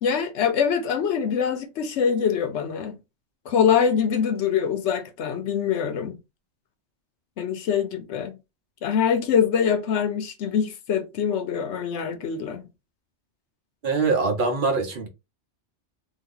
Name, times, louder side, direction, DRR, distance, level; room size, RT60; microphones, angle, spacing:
voice 1, 0.0-3.0 3.5-6.2 7.4-8.4 8.8-12.7, left 7 dB, 85° left, 1.0 m, -24 dB
voice 2, 13.8-15.1, right 4 dB, 50° right, 0.9 m, -23 dB
2.8 x 2.5 x 3.7 m
omnidirectional pair, 1.2 m